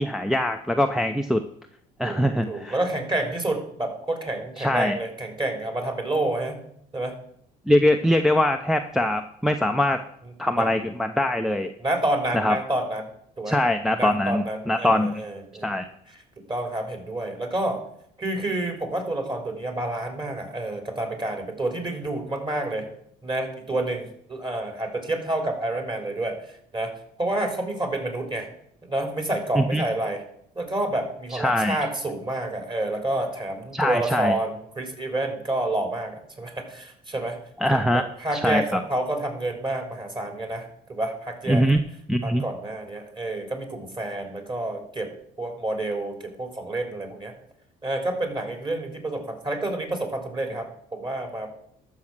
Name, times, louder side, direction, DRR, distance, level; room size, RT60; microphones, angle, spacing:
voice 1, 0.0-1.4 2.0-2.8 4.6-5.0 7.7-10.0 10.4-11.7 12.3-12.6 13.5-15.2 15.6-15.9 29.5-29.8 31.3-31.8 33.7-34.3 37.6-38.0 38.3-38.8 41.5-41.8 42.1-42.4, left 1 dB, ahead, 5 dB, 0.8 m, -22 dB
voice 2, 2.0-6.6 6.9-7.2 10.6-10.7 11.8-13.1 13.4-13.6 13.9-15.8 16.5-17.8 18.2-22.9 23.2-26.9 27.2-28.5 28.8-30.2 30.6-37.4 37.7-41.6 42.2-45.1 45.4-47.3 47.8-51.5, right 1 dB, 25° right, 4 dB, 3.7 m, -29 dB
13.0 x 6.5 x 6.2 m, 0.70 s
hypercardioid pair, 55°, 20 cm